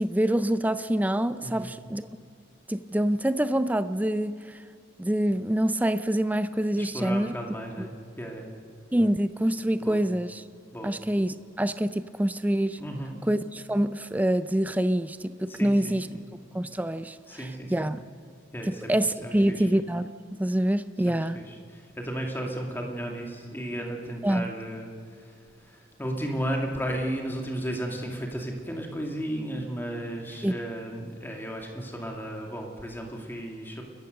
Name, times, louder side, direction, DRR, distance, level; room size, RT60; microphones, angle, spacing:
voice 1, 0.0-2.1 2.7-4.6 5.0-7.3 7.8-7.9 8.9-10.4 10.8-12.8 13.3-16.1 16.5-17.2 17.7-18.0 18.7-21.4 24.2-24.5 30.4-30.5, right 1 dB, 10° right, 12 dB, 0.4 m, -26 dB
voice 2, 1.4-1.7 6.7-8.6 9.8-10.0 10.7-10.9 12.8-13.2 15.5-16.2 17.3-17.9 18.5-19.7 21.1-33.8, right 1 dB, 10° left, 1 dB, 2.4 m, -34 dB
29.5 x 14.5 x 6.7 m, 2.2 s
head